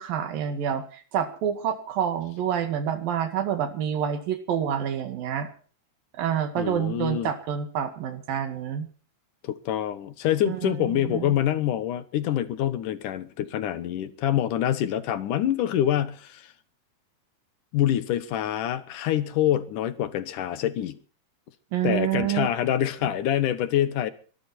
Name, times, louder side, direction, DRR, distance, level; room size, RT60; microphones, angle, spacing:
voice 1, 0.0-5.5 6.1-8.9 10.5-11.3 21.7-22.5, right 9 dB, 85° right, 3.8 m, -28 dB
voice 2, 6.6-7.3 9.4-16.5 17.7-21.0 21.8-24.1, left 11 dB, 70° left, 2.7 m, -26 dB
23.5 x 13.0 x 4.3 m
omnidirectional pair, 3.9 m